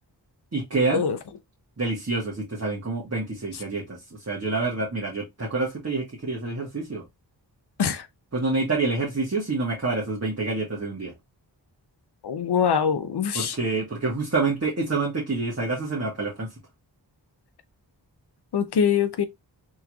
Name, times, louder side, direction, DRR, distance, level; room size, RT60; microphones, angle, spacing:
voice 1, 0.5-1.0 1.8-7.0 8.3-11.1 13.3-16.5, right 3 dB, 35° right, 1.4 m, -27 dB
voice 2, 12.2-13.6 18.5-19.2, left 7 dB, 60° left, 0.6 m, -23 dB
3.6 x 3.0 x 2.3 m
cardioid pair, 45°, 44 cm